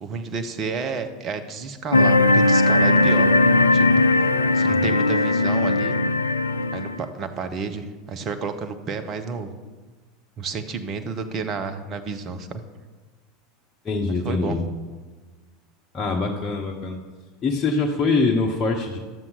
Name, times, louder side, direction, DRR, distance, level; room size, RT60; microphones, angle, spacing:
voice 1, 0.0-3.3 3.7-4.1 4.5-6.0 6.7-9.5 10.4-12.6 14.2-14.6, right 5 dB, 40° right, 8 dB, 0.9 m, -31 dB
sound 1, 1.9-7.0, left 2 dB, 85° left, 0.4 m, -18 dB
voice 2, 13.8-14.6 15.9-17.0 17.4-19.0, left 3 dB, 25° left, -1 dB, 1.1 m, -23 dB
12.5 x 7.3 x 4.1 m, 1.3 s
figure-of-eight pair, 80°, 0 cm